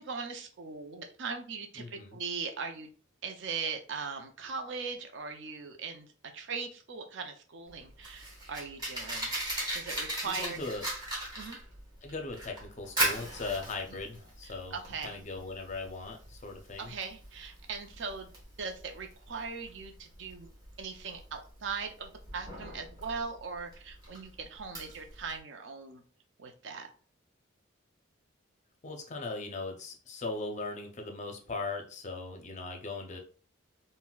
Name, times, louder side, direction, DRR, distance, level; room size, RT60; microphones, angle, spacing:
voice 1, 0.0-2.9 3.2-9.3 9.7-10.6 11.4-11.6 14.4-15.2 16.8-18.3 18.6-20.5 20.8-26.0 26.4-26.9, right 5 dB, 60° right, 5 dB, 0.5 m, -39 dB
voice 2, 1.8-2.2 10.2-10.9 12.0-14.8 15.0-16.9 28.8-33.2, left 3 dB, 35° left, 4 dB, 0.5 m, -39 dB
Fire, 7.7-25.4, right 1 dB, 20° right, 1.0 m, -38 dB
3.9 x 2.1 x 2.3 m, 0.41 s
head